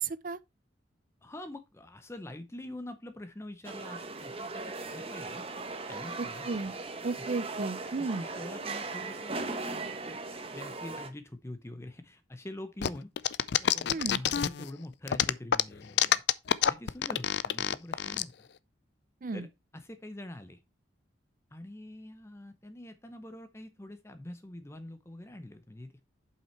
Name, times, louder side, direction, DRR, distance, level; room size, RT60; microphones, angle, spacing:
voice 1, 0.0-0.4 6.2-6.7 7.0-8.3 13.9-14.2 19.2-19.5, right 4 dB, 45° right, 0.5 m, -34 dB
voice 2, 1.2-5.4 5.9-6.5 8.0-9.4 10.1-10.2 10.5-13.1 13.6-16.2 16.6-18.5 19.3-19.5 19.7-20.6 21.5-26.0, left 1 dB, 15° left, 0.6 m, -45 dB
sound 1, 3.6-11.1, right 3 dB, 30° right, 1.1 m, -38 dB
sound 2, 12.8-14.7 15.1-18.2, left 9 dB, 60° left, 0.4 m, -26 dB
7.6 x 5.7 x 4.3 m
head